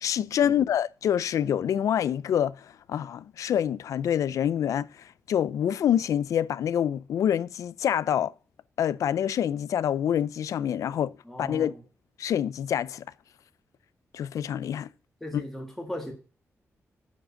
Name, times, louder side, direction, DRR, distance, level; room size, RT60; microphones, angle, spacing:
voice 1, 0.0-8.3 8.8-11.1 11.4-11.7 12.2-13.0 14.1-14.9 15.3-15.4, left 9 dB, 85° left, 0.4 m, -26 dB
voice 2, 11.3-11.8 15.2-16.1, equal, 5° left, 1.8 m, -37 dB
7.4 x 6.2 x 7.0 m
wide cardioid pair, 170°, 5 cm